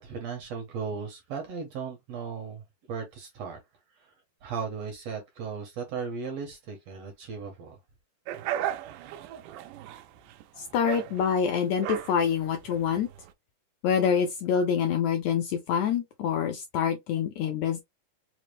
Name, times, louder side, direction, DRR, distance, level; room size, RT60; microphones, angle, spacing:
voice 1, 0.0-3.6 3.9-4.1 4.4-7.8, right 5 dB, 70° right, 1.7 m, -36 dB
sound 1, 8.3-13.3, right 11 dB, 85° right, 2.1 m, -36 dB
voice 2, 10.6-13.1 13.8-17.8, left 7 dB, 80° left, 1.6 m, -26 dB
5.1 x 2.0 x 3.1 m
omnidirectional pair, 3.7 m